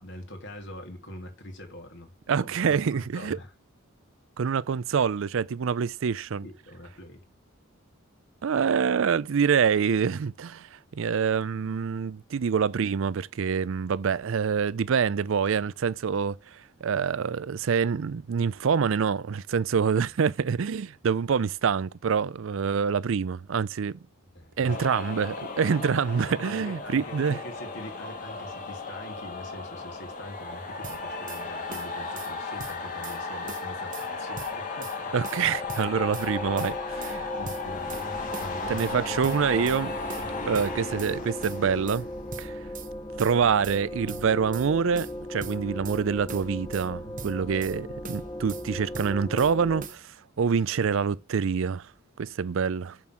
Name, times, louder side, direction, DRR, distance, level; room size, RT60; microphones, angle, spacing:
voice 1, 0.0-2.1 2.6-3.5 6.4-7.2 24.3-24.8 26.2-35.1 37.0-38.8 40.2-40.5, left 1 dB, 60° left, 2.7 m, -44 dB
voice 2, 2.3-3.4 4.4-6.5 8.4-24.0 24.6-27.4 35.1-37.1 38.7-39.9 40.5-42.1 42.4-42.6 43.2-51.9 52.2-53.0, right 6 dB, 65° right, 0.4 m, -26 dB
sound 1, 24.7-43.2, left 4 dB, 40° left, 2.1 m, -36 dB
sound 2, 30.8-31.4 31.7-32.3 32.6-33.2 33.5-34.1 34.4-35.0 35.2-36.3 36.6-37.2 37.4-38.1 38.3-38.9 39.2-39.8 40.1-41.1 41.4-42.0 42.3-42.9 43.2-43.8 44.1-44.7 44.9-46.0 46.3-46.9 47.2-47.8 48.0-48.6 48.9-49.5 49.8-50.0, right 6 dB, 40° right, 0.8 m, -42 dB
sound 3, 35.0-49.9, left 1 dB, 20° left, 1.3 m, -38 dB
7.0 x 6.1 x 6.1 m
head